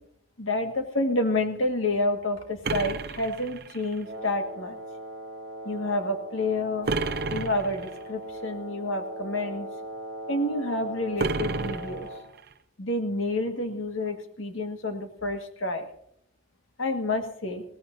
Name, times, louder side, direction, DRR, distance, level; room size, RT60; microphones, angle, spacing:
voice 1, 0.4-4.8 5.7-6.9 7.3-9.7 10.3-12.1 12.8-15.9 16.8-17.6, left 2 dB, 90° left, 5 dB, 1.8 m, -29 dB
sound 1, 2.6-4.0 6.9-8.0 11.2-12.5, right 3 dB, 50° right, 0.7 m, -31 dB
Wind instrument woodwind instrument, 4.0-12.3, equal, 65° right, 1.6 m, -39 dB
21.0 x 17.0 x 2.7 m, 0.70 s
head